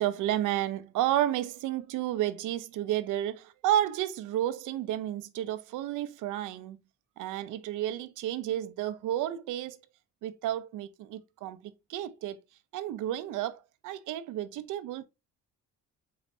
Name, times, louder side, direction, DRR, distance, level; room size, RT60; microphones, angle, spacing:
voice 1, 0.0-6.8 7.2-9.8 10.2-12.4 12.7-15.0, right 12 dB, 90° right, 0.6 m, -31 dB
4.6 x 3.9 x 2.6 m
cardioid pair, 90°, 30 cm